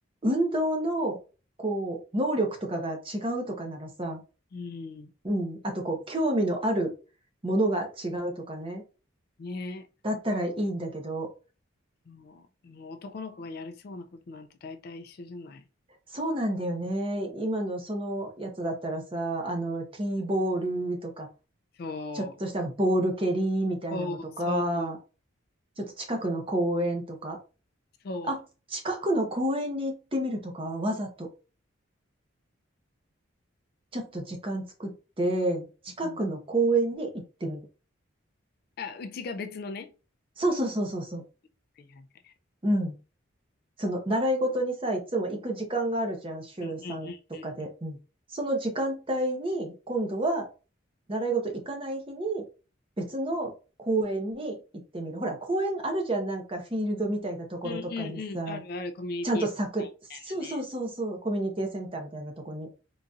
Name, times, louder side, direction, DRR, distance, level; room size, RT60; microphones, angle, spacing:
voice 1, 0.2-1.2 1.6-4.2 5.2-6.9 7.4-8.8 10.0-11.3 16.1-21.3 22.1-25.0 25.8-27.4 28.3-28.4 28.7-31.3 33.9-37.1 37.4-37.6 40.4-41.2 42.6-43.0 43.8-47.1 47.4-48.0 48.3-50.5 51.1-52.4 53.0-53.5 53.8-54.6 54.9-58.6 59.2-59.9 60.2-62.7, right 1 dB, 25° right, 0.8 m, -29 dB
voice 2, 4.5-5.1 9.4-9.9 12.1-15.7 21.7-22.3 23.9-25.0 28.0-28.4 36.0-36.2 38.8-39.9 41.8-42.3 46.6-47.5 57.6-59.5 59.8-60.6, left 3 dB, 50° left, 0.3 m, -38 dB
3.8 x 2.6 x 2.3 m
head